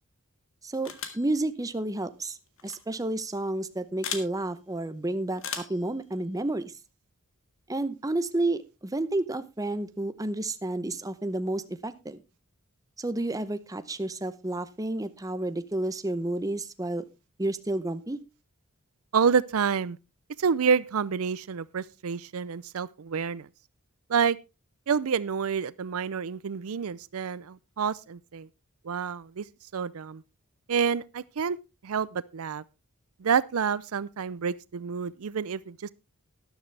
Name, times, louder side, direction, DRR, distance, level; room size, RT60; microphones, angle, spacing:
voice 1, 0.6-2.4 2.6-6.7 7.7-12.2 13.0-17.0 17.4-18.2, right 2 dB, 15° right, 0.7 m, -31 dB
sound 1, 0.9-1.3 2.6-2.8 4.0-4.3 5.4-5.8, left 7 dB, 65° left, 1.8 m, -36 dB
voice 2, 19.1-20.0 20.4-23.5 24.1-24.4 24.9-28.5 28.8-29.4 29.7-30.2 30.7-31.6 31.8-32.6 33.2-35.9, right 6 dB, 75° right, 0.5 m, -28 dB
13.0 x 11.5 x 3.3 m
head